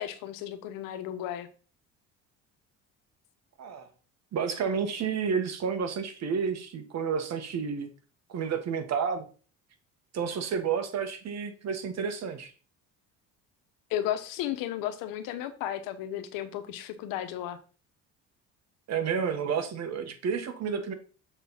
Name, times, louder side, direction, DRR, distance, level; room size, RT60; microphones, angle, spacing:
voice 1, 0.0-1.5 13.9-17.6, left 11 dB, 80° left, 10 dB, 1.1 m, -34 dB
voice 2, 3.6-3.9 4.3-7.9 8.3-9.2 10.1-12.5 18.9-20.9, right 6 dB, 50° right, 8 dB, 1.5 m, -30 dB
7.0 x 4.0 x 5.7 m, 0.39 s
cardioid pair, 95°, 33 cm